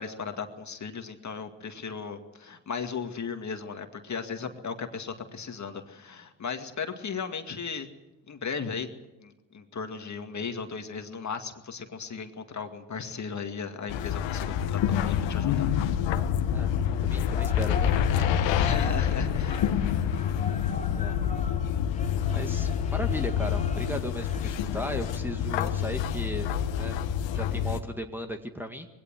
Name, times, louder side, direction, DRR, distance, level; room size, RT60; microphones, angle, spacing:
voice 1, 0.0-7.9 8.3-8.9 9.2-15.7 18.6-19.7, left 5 dB, 35° left, 6 dB, 2.2 m, -36 dB
sound 1, 13.9-27.8, left 9 dB, 65° left, 1.5 m, -27 dB
voice 2, 17.0-18.3 20.9-21.2 22.3-26.5 26.8-27.0 27.3-28.9, equal, 5° right, 3 dB, 1.9 m, -36 dB
sound 2, 17.3-25.1, left 3 dB, 15° left, 1.6 m, -42 dB
21.0 x 17.0 x 7.5 m, 0.98 s
hypercardioid pair, 65°, 48 cm